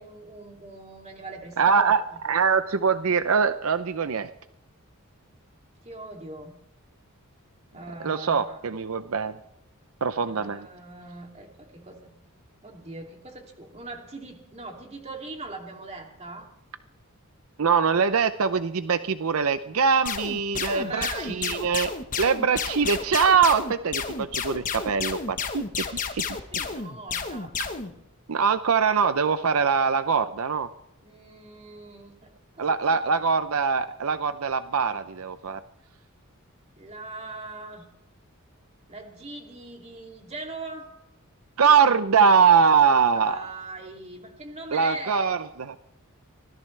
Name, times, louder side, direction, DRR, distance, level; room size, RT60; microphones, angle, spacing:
voice 1, 0.0-2.3 5.8-6.6 7.7-8.6 10.3-12.1 12.6-16.5 20.6-21.7 26.3-27.9 31.0-32.7 33.0-33.2 36.8-37.9 38.9-40.9 43.1-45.3, right 2 dB, 30° right, 2 dB, 2.7 m, -41 dB
voice 2, 1.6-4.3 8.0-9.3 10.0-10.6 17.6-25.8 26.1-26.2 28.3-30.7 32.6-35.6 41.6-43.4 44.7-45.8, right 6 dB, 80° right, 11 dB, 0.6 m, -23 dB
sound 1, 20.1-27.9, left 5 dB, 40° left, 1.2 m, -31 dB
24.5 x 17.0 x 3.3 m, 0.81 s
head